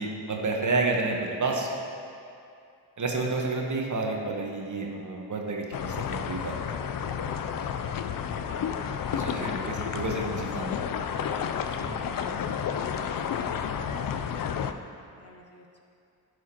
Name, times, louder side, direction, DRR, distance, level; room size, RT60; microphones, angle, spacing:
voice 1, 0.0-1.7 3.0-6.5 9.1-10.8 11.8-12.3, right 3 dB, 45° right, 0 dB, 1.2 m, -30 dB
sound 1, 5.7-14.7, left 7 dB, 55° left, 0.5 m, -31 dB
voice 2, 8.3-9.5 13.6-15.8, left 1 dB, 35° left, 1 dB, 1.2 m, -49 dB
11.0 x 4.9 x 2.9 m, 2.5 s
supercardioid pair, 50°, 41 cm